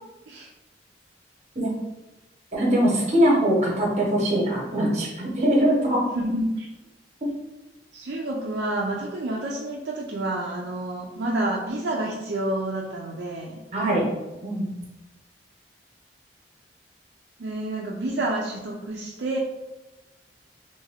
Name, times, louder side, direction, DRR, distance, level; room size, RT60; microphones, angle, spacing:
voice 1, 2.5-6.0 13.7-14.1 14.4-14.7, equal, 40° right, -2 dB, 1.0 m, -22 dB
voice 2, 6.1-6.7 7.9-13.6 17.4-19.4, right 1 dB, 70° right, -2 dB, 0.5 m, -29 dB
3.3 x 2.6 x 3.5 m, 1.0 s
head